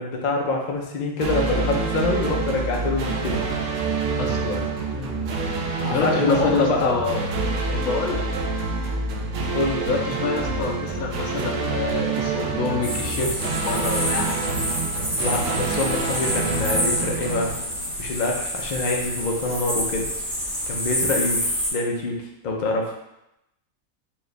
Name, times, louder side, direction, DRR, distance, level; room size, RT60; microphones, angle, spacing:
voice 1, 0.0-3.5 4.9-5.2 5.8-6.9 9.5-9.8 15.2-17.5 18.0-20.1 20.7-22.2 22.4-22.9, left 2 dB, 60° left, 0 dB, 0.4 m, -25 dB
sound 1, 1.2-18.2, right 4 dB, 70° right, 0.9 m, -27 dB
voice 2, 4.2-4.6 5.9-7.2 7.7-8.3 9.8-14.5, left 5 dB, 80° left, 1 dB, 1.1 m, -27 dB
sound 2, 12.8-21.7, equal, ahead, 0.5 m, -28 dB
4.4 x 2.4 x 3.3 m, 0.86 s
omnidirectional pair, 1.5 m